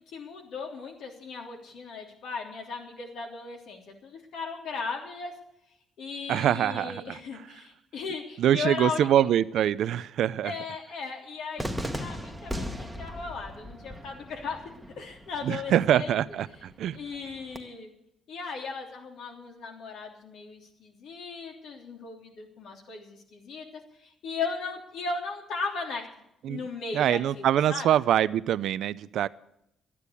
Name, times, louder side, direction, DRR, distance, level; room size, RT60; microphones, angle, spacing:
voice 1, 0.1-5.3 6.0-9.1 10.4-16.4 16.9-17.9 18.3-23.7 24.0-26.0 26.5-27.9, left 4 dB, 75° left, 2 dB, 3.2 m, -37 dB
voice 2, 6.3-7.2 8.4-10.5 15.4-17.0 26.4-26.6 26.9-29.3, right 11 dB, 75° right, 17 dB, 0.5 m, -24 dB
Cheering / Fireworks, 11.6-17.6, equal, 5° right, 1.3 m, -38 dB
12.5 x 10.0 x 8.2 m, 0.81 s
cardioid pair, 90°, 0 cm